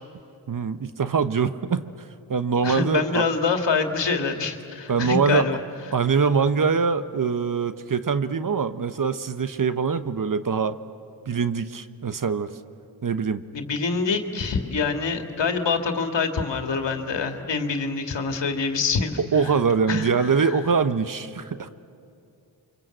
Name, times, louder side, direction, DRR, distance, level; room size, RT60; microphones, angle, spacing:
voice 1, 0.5-1.8 2.3-3.2 4.9-5.5 5.9-10.8 11.3-12.5 13.0-13.4 19.2-21.7, right 5 dB, 45° right, 12 dB, 1.1 m, -23 dB
voice 2, 2.6-5.6 13.5-19.2 19.9-20.5, left 5 dB, 65° left, 5 dB, 2.3 m, -25 dB
29.0 x 24.5 x 7.9 m, 2.5 s
cardioid pair, 50°, 46 cm